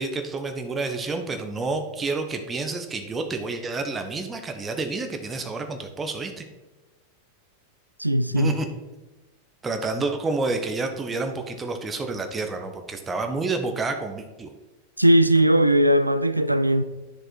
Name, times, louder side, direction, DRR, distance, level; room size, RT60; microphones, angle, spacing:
voice 1, 0.0-6.4 8.3-8.7 9.6-14.5, right 3 dB, 20° right, 1.0 m, -29 dB
voice 2, 8.0-8.6 15.0-16.8, right 1 dB, 85° right, 0.4 m, -19 dB
10.0 x 6.5 x 4.4 m
figure-of-eight pair, 90°, 0 cm